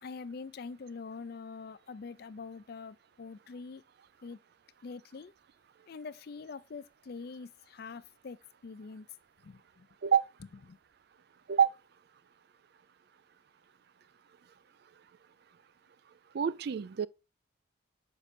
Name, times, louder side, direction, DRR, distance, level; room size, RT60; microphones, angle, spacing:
voice 1, 0.0-3.8 4.2-4.4 4.8-5.3 5.9-8.4 8.6-9.1 9.4-9.9 10.7-10.8, left 4 dB, 50° left, 0.4 m, -44 dB
voice 2, 16.3-17.1, right 7 dB, 50° right, 0.3 m, -26 dB
6.6 x 5.4 x 2.6 m
head